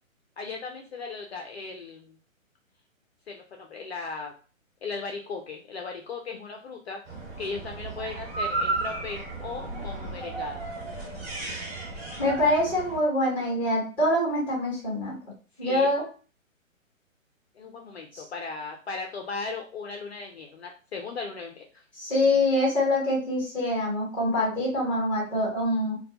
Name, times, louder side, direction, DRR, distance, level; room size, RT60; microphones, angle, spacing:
voice 1, 0.4-2.2 3.3-4.3 4.8-7.0 7.4-10.7 15.6-15.9 17.6-21.7, left 4 dB, 55° left, 2 dB, 0.4 m, -37 dB
sound 1, 7.1-13.0, right 3 dB, 45° right, 1.2 m, -34 dB
voice 2, 12.2-15.2 15.6-16.0 18.1-18.2 22.0-26.0, left 1 dB, 5° left, -6 dB, 1.0 m, -25 dB
2.2 x 2.2 x 2.6 m, 0.36 s
figure-of-eight pair, 130°, 40 cm